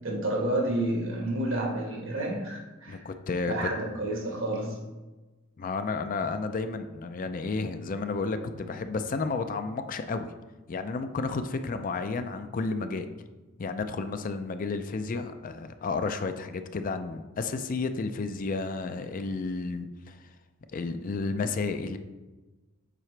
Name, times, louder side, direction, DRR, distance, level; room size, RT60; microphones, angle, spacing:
voice 1, 0.0-3.1 3.4-4.8, right 1 dB, 75° right, -1 dB, 1.5 m, -30 dB
voice 2, 2.9-3.7 5.6-10.3 10.7-13.1 13.6-20.2 20.7-22.0, left 4 dB, 45° left, 9 dB, 0.4 m, -32 dB
7.5 x 4.9 x 3.3 m, 1.2 s
head